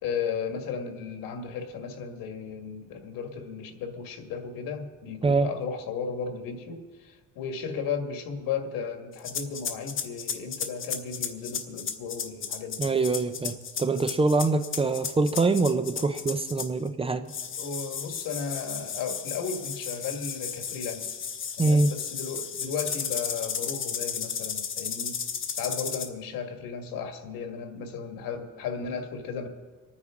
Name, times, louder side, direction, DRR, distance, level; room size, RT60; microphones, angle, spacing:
voice 1, 0.0-13.0 17.6-21.2 21.5-25.2 25.6-29.5, left 6 dB, 90° left, 5 dB, 1.9 m, -35 dB
sound 1, 9.2-16.9 17.3-26.1, left 7 dB, 35° left, 1.1 m, -34 dB
voice 2, 12.8-17.2 21.6-21.9, right 3 dB, 15° right, 9 dB, 0.5 m, -24 dB
26.5 x 9.6 x 3.8 m, 1.3 s
cardioid pair, 155°, 33 cm